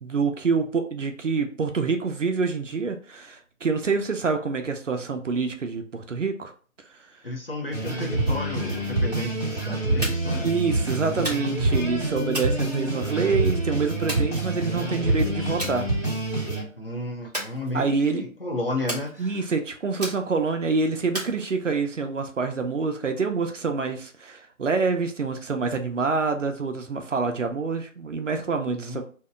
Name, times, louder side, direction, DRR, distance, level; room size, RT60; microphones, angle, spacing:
voice 1, 0.0-6.5 10.4-15.9 17.7-18.2 19.2-29.0, right 4 dB, 60° right, 5 dB, 0.6 m, -26 dB
voice 2, 7.2-10.5 16.8-19.5 28.6-29.0, left 1 dB, 45° left, 0 dB, 0.6 m, -33 dB
sound 1, 7.7-16.6, right 2 dB, 10° right, 1.2 m, -26 dB
sound 2, 10.0-10.4 11.2-11.7 12.3-13.3 14.1-14.9 15.6-15.8 16.2-16.5 17.3-18.1 18.9-19.5 20.0-20.6 21.1-21.9, right 1 dB, 30° right, 0.8 m, -35 dB
2.7 x 2.2 x 3.5 m, 0.41 s
figure-of-eight pair, 175°, 42 cm